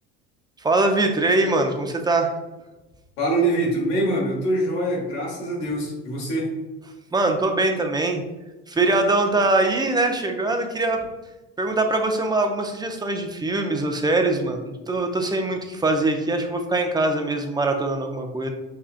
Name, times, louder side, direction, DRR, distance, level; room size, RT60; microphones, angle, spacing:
voice 1, 0.6-2.3 7.1-8.2 8.7-11.1 11.6-18.5, right 2 dB, 15° right, 4 dB, 0.5 m, -22 dB
voice 2, 3.2-6.5, right 1 dB, 85° left, -2 dB, 1.3 m, -24 dB
5.4 x 2.4 x 2.4 m, 1.1 s
hypercardioid pair, 75°, 32 cm